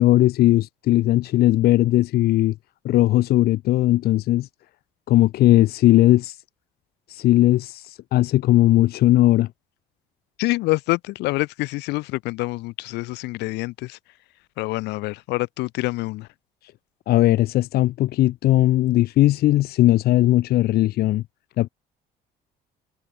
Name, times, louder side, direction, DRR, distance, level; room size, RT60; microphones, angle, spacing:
voice 1, 0.0-2.5 2.8-4.5 5.1-6.4 7.1-9.5 17.1-21.2 21.6-21.7, left 15 dB, 70° left, 0.8 m, -18 dB
voice 2, 10.4-14.0 14.6-16.3, left 21 dB, 90° left, 1.6 m, -26 dB
cardioid pair, 110°, 17 cm